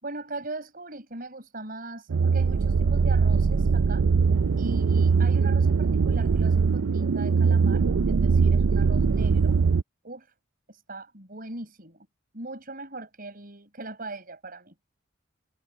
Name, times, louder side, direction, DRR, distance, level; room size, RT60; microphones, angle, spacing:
voice 1, 0.0-4.1 4.6-9.6 10.0-10.3 10.7-12.1 12.3-14.7, right 2 dB, 45° right, 5.4 m, -39 dB
sound 1, 2.1-9.8, right 5 dB, 85° right, 0.5 m, -21 dB
head